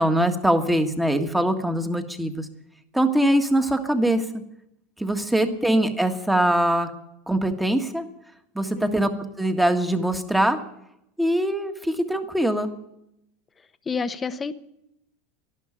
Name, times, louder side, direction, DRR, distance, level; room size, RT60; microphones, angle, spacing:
voice 1, 0.0-2.5 2.9-4.2 5.0-6.9 7.3-8.1 8.5-9.1 9.4-10.6 11.2-12.7, right 1 dB, 5° right, 7 dB, 1.7 m, -22 dB
voice 2, 8.7-9.1 13.9-14.5, left 5 dB, 20° left, 12 dB, 0.9 m, -30 dB
12.0 x 12.0 x 9.9 m, 0.82 s
supercardioid pair, 125°, 0 cm